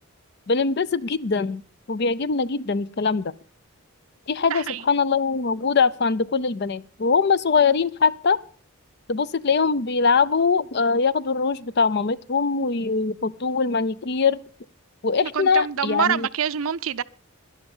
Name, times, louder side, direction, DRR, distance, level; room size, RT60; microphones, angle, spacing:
voice 1, 0.5-3.3 4.3-8.4 9.1-14.4 15.0-16.3, left 5 dB, 50° left, 0.5 m, -22 dB
voice 2, 15.2-17.0, right 7 dB, 70° right, 0.6 m, -26 dB
12.0 x 11.5 x 5.5 m
head